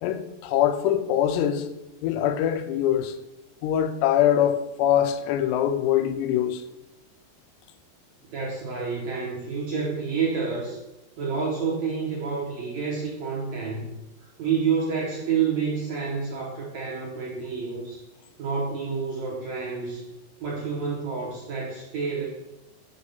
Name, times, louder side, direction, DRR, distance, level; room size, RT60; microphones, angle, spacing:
voice 1, 0.0-1.7 2.0-3.2 3.6-6.6, left 10 dB, 85° left, 2.7 m, -23 dB
voice 2, 8.3-10.8 11.2-13.9 14.4-18.0 18.4-20.1 20.4-22.3, right 5 dB, 70° right, 1.7 m, -29 dB
8.0 x 3.6 x 5.5 m
omnidirectional pair, 4.8 m